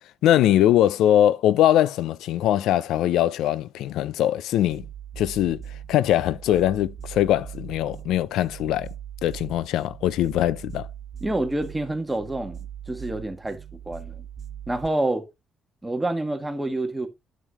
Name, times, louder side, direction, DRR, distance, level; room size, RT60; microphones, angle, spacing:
voice 1, 0.2-4.8 5.2-5.6 5.9-8.9 9.2-10.9, left 12 dB, 90° left, 0.4 m, -21 dB
sound 1, 4.7-14.9, right 9 dB, 60° right, 0.7 m, -40 dB
voice 2, 11.2-12.6 12.9-13.6 13.8-14.2 14.7-15.2 15.8-17.1, right 2 dB, 10° right, 1.6 m, -27 dB
9.0 x 6.4 x 3.0 m
cardioid pair, 90°, 0 cm